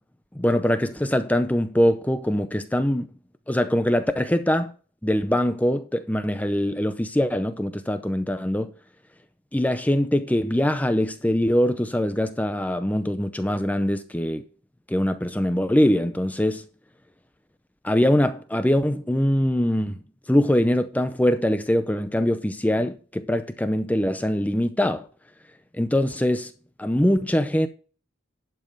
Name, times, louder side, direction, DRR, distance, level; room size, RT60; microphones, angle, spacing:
voice 1, 0.4-3.1 3.5-4.7 5.0-8.7 9.5-14.4 14.9-16.6 17.8-20.0 20.3-25.1 25.7-26.5 26.8-27.7, left 1 dB, 10° left, 0.5 m, -23 dB
11.0 x 5.3 x 5.3 m
head